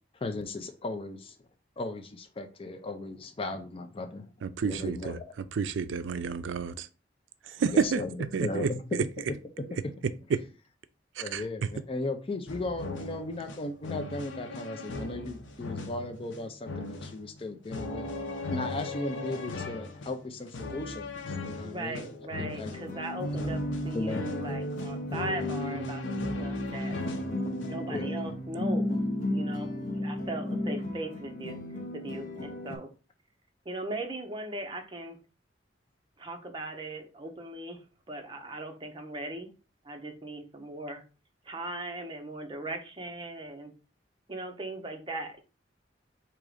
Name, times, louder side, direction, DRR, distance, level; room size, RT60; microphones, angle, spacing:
voice 1, 0.1-1.4 1.8-4.3 4.6-5.2 7.4-8.1 8.4-9.1 9.6-9.7 11.2-18.1 18.5-22.0 22.4-22.7 23.9-24.3 27.9-28.2, left 2 dB, 30° left, 0.5 m, -36 dB
voice 2, 4.4-5.2 5.5-6.9 7.5-8.0 8.3-9.0 10.3-10.4 11.2-11.4, right 5 dB, 85° right, 0.4 m, -29 dB
sound 1, 12.5-27.9, left 3 dB, 85° left, 0.7 m, -39 dB
voice 3, 21.6-27.0 27.7-29.0 29.3-31.6 31.9-32.9 33.6-35.2 36.2-39.5 39.8-41.0 41.4-43.7 44.3-45.4, right 2 dB, 25° right, 0.8 m, -39 dB
sound 2, 22.7-32.8, left 1 dB, 45° left, 0.9 m, -33 dB
3.7 x 3.0 x 4.8 m
head